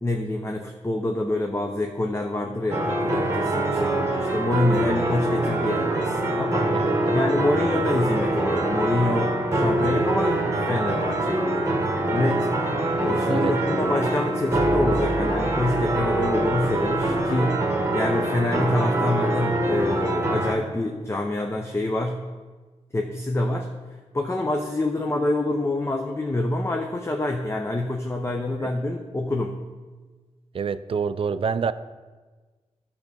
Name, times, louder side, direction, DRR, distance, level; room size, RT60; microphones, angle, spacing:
voice 1, 0.0-6.7 7.1-12.7 13.0-17.6 17.9-22.2 22.9-23.7 24.1-29.6, left 1 dB, 20° left, 2 dB, 0.6 m, -26 dB
sound 1, 2.7-20.5, right 1 dB, 25° right, 1.2 m, -24 dB
voice 2, 6.7-7.2 13.3-13.6 28.6-28.7 30.5-31.7, right 6 dB, 50° right, 13 dB, 0.4 m, -27 dB
10.5 x 3.5 x 6.7 m, 1.3 s
wide cardioid pair, 95°, 12 cm